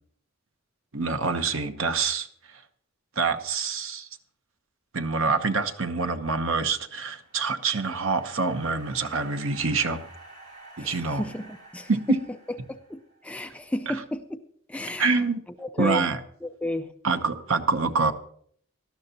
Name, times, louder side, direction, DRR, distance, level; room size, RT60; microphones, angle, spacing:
voice 1, 0.9-2.3 3.2-4.1 4.9-10.0 10.8-11.2 11.9-12.2 13.9-14.0 15.0-15.4 15.8-16.2 17.0-18.1, right 4 dB, 65° right, 8 dB, 0.9 m, -26 dB
sound 1, 7.0-13.2, right 2 dB, 35° right, 3.4 m, -50 dB
voice 2, 10.8-12.2 12.7-14.4 14.7-15.2 15.6-16.1 16.4-16.9, left 1 dB, 5° left, 7 dB, 0.4 m, -33 dB
18.0 x 12.5 x 2.9 m, 0.62 s
head